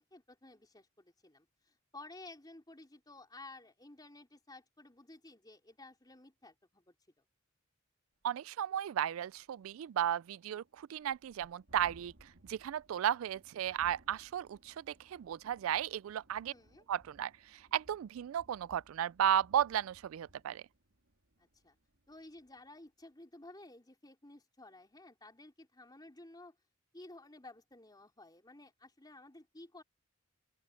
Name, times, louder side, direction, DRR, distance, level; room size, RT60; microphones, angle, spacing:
voice 1, 0.0-7.2 16.5-16.9 21.4-21.8 22.1-26.6 26.9-29.8, left 2 dB, 20° left, 3.7 m, -54 dB
Thunderstorm, 8.2-8.3 8.7-8.8 9.1-22.7, right 1 dB, 70° right, 2.3 m, -64 dB
voice 2, 8.2-12.1 12.5-16.5 16.9-20.6, right 10 dB, 85° right, 0.3 m, -34 dB
open air
head